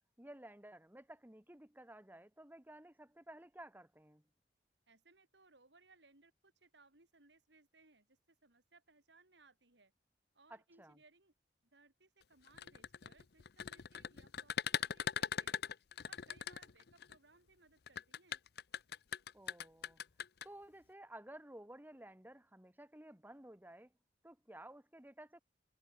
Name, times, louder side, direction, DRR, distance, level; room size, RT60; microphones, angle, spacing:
voice 1, 0.2-4.2 10.5-11.0 19.3-20.0 20.4-23.9 24.2-25.4, right 1 dB, 10° right, 1.8 m, -55 dB
voice 2, 4.9-9.9 10.3-11.3 11.7-15.6 16.1-18.4, right 3 dB, 80° right, 4.9 m, -67 dB
sound 1, 12.5-17.1 17.9-20.5, left 8 dB, 60° left, 0.6 m, -40 dB
head